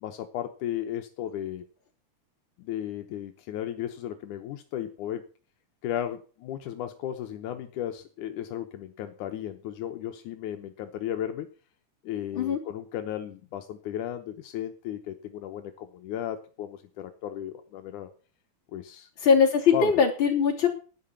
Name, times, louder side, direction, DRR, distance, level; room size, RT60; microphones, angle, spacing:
voice 1, 0.0-1.7 2.6-5.3 5.8-11.5 12.0-18.1 18.7-19.1 19.7-19.9, left 11 dB, 80° left, 6 dB, 2.4 m, -35 dB
voice 2, 19.2-20.7, left 6 dB, 40° left, -1 dB, 3.7 m, -21 dB
11.5 x 9.8 x 7.1 m, 0.38 s
omnidirectional pair, 3.5 m